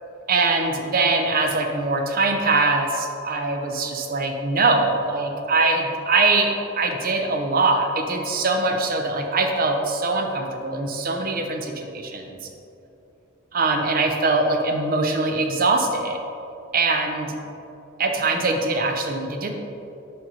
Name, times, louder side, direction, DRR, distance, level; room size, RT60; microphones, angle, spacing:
voice 1, 0.3-12.4 13.5-16.2 16.7-17.4 18.0-19.5, right 3 dB, 45° right, 4 dB, 0.6 m, -22 dB
5.4 x 5.3 x 4.3 m, 2.8 s
head